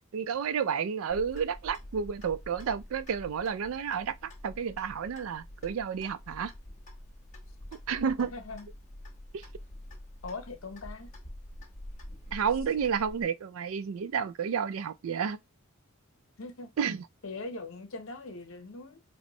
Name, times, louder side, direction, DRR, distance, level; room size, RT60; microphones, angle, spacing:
voice 1, 0.1-6.5 7.9-8.3 9.3-9.5 12.3-15.4 16.8-17.1, right 7 dB, 70° right, 0.4 m, -31 dB
Clock, 1.1-13.2, left 1 dB, 35° left, 1.1 m, -47 dB
voice 2, 8.3-8.7 10.2-11.1 16.4-16.7 17.2-19.0, left 3 dB, 70° left, 0.9 m, -41 dB
4.2 x 2.3 x 3.0 m
head